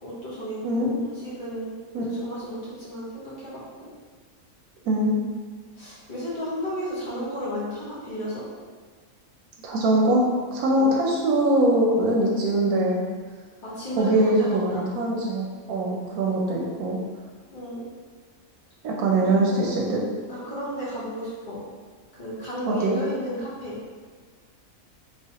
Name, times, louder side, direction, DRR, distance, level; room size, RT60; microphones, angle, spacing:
voice 1, 0.0-3.9 5.8-8.4 10.7-11.0 13.6-14.8 17.5-17.8 19.2-19.8 20.3-21.6 22.2-23.8, equal, 35° left, -10 dB, 1.3 m, -33 dB
voice 2, 4.9-5.2 9.6-10.2 10.5-13.0 14.0-17.0 18.8-20.0 22.6-23.0, right 1 dB, 90° right, -2 dB, 1.1 m, -22 dB
3.2 x 3.1 x 2.8 m, 1.5 s
omnidirectional pair, 1.5 m